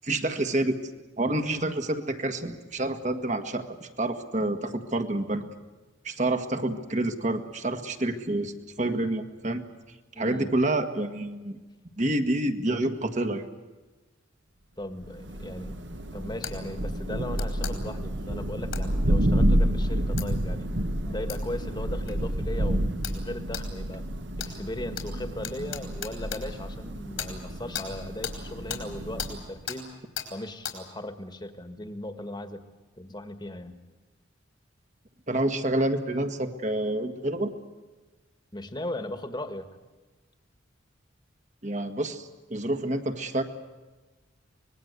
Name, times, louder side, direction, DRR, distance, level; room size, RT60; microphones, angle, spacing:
voice 1, 0.0-0.8 1.2-5.4 6.0-9.6 10.2-11.6 12.0-13.5 35.3-37.5 41.6-43.4, right 1 dB, 40° right, 7 dB, 1.7 m, -28 dB
voice 2, 10.1-10.5 14.8-20.7 21.1-24.1 24.4-29.9 30.3-32.6 33.0-33.8 38.5-39.7, left 1 dB, 20° left, 9 dB, 1.7 m, -37 dB
Thunder, 15.0-29.6, equal, 60° right, 1.5 m, -29 dB
sound 1, 16.4-16.6 17.4-17.7 18.7-18.9 20.2-20.3 21.3-21.4 22.1-22.2 23.0-23.2 23.5-23.7 24.4-24.5 25.0-25.1 25.4-26.4 27.2-27.3 27.7-27.9 28.2-28.4 28.7-28.8 29.2-29.3 29.7-29.8 30.2-30.3 30.6-30.8, left 8 dB, 80° left, 4.5 m, -35 dB
25.0 x 20.5 x 8.2 m, 1.2 s
head